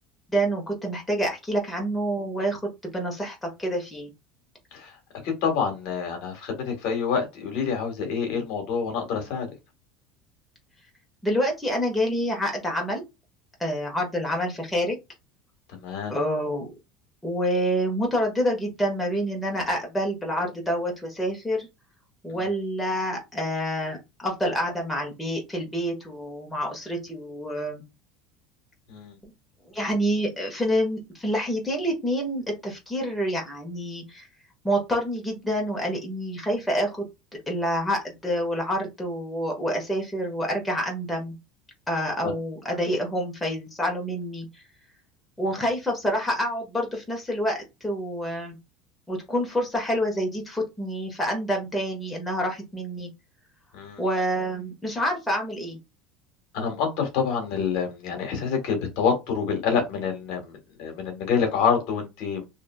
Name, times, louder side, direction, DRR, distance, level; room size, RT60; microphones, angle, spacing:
voice 1, 0.3-4.1 11.2-13.0 13.6-15.0 16.1-16.7 17.2-21.7 22.2-27.8 29.7-34.3 34.6-37.0 37.5-41.3 41.9-44.6 45.4-48.6 49.1-53.1 54.0-55.8, equal, 5° left, 1.1 m, -27 dB
voice 2, 5.4-9.5 15.7-16.1 22.3-22.4 28.9-29.2 42.2-42.3 53.7-54.0 56.5-62.4, left 6 dB, 70° left, 1.2 m, -27 dB
2.9 x 2.6 x 2.2 m
supercardioid pair, 130°, 0 cm